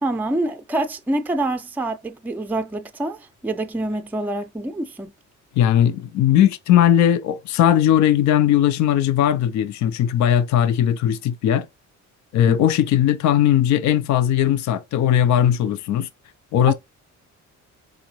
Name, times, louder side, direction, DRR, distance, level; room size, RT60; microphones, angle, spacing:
voice 1, 0.0-5.1 12.5-12.6, right 2 dB, 5° right, 0.5 m, -26 dB
voice 2, 5.6-11.7 12.3-16.1 16.5-16.7, left 10 dB, 70° left, 0.5 m, -18 dB
4.9 x 2.6 x 2.9 m
cardioid pair, 90°, 30 cm